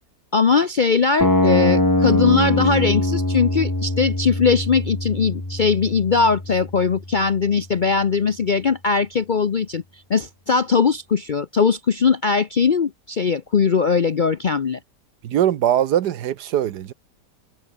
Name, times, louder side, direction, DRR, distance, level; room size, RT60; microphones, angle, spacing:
voice 1, 0.3-9.8 10.1-14.8, left 5 dB, 55° left, 0.5 m, -20 dB
sound 1, 1.2-7.2, left 1 dB, 10° left, 2.1 m, -22 dB
voice 2, 15.2-16.9, right 11 dB, 80° right, 1.5 m, -21 dB
omnidirectional pair, 1.8 m